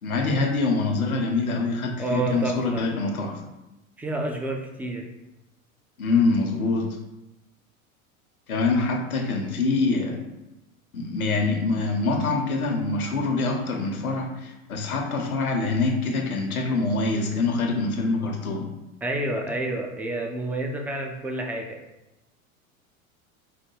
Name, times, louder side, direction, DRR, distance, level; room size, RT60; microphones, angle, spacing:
voice 1, 0.0-3.4 6.0-6.9 8.5-10.2 10.9-18.7, left 3 dB, 80° left, 3 dB, 0.9 m, -25 dB
voice 2, 2.0-2.8 4.0-5.0 19.0-21.8, right 2 dB, 5° right, 2 dB, 0.3 m, -29 dB
5.1 x 2.2 x 4.6 m, 0.97 s
figure-of-eight pair, 80°, 43 cm